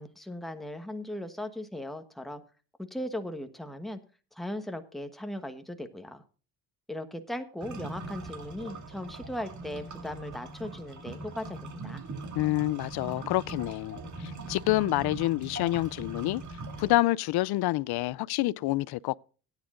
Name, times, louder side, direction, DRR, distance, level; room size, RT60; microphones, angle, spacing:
voice 1, 0.0-2.4 2.8-4.0 4.3-6.2 6.9-12.0, left 1 dB, ahead, 1.2 m, -38 dB
sound 1, 7.6-16.9, right 2 dB, 45° right, 2.4 m, -41 dB
voice 2, 12.3-16.4 16.8-19.1, left 18 dB, 70° left, 0.5 m, -28 dB
18.0 x 9.8 x 2.5 m
cardioid pair, 110°, 40 cm